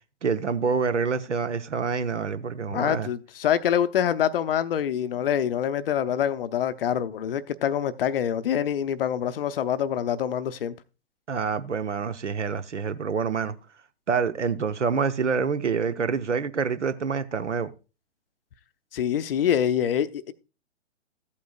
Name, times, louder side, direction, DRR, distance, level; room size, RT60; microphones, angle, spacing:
voice 1, 0.2-3.1 11.3-13.5 14.1-17.7, right 5 dB, 75° right, 0.9 m, -27 dB
voice 2, 2.7-10.7 18.9-20.3, left 9 dB, 50° left, 0.6 m, -25 dB
14.5 x 8.5 x 2.3 m
figure-of-eight pair, 120°, 36 cm